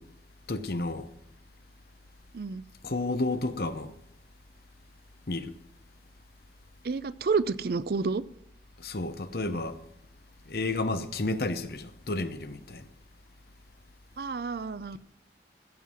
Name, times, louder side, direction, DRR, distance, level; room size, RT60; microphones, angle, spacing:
voice 1, 0.5-1.1 2.8-3.9 5.3-5.5 8.8-9.8 10.5-12.9, left 2 dB, 60° left, 0.9 m, -31 dB
voice 2, 6.8-8.2 14.2-15.0, right 4 dB, 55° right, 0.4 m, -29 dB
16.0 x 7.5 x 6.2 m
head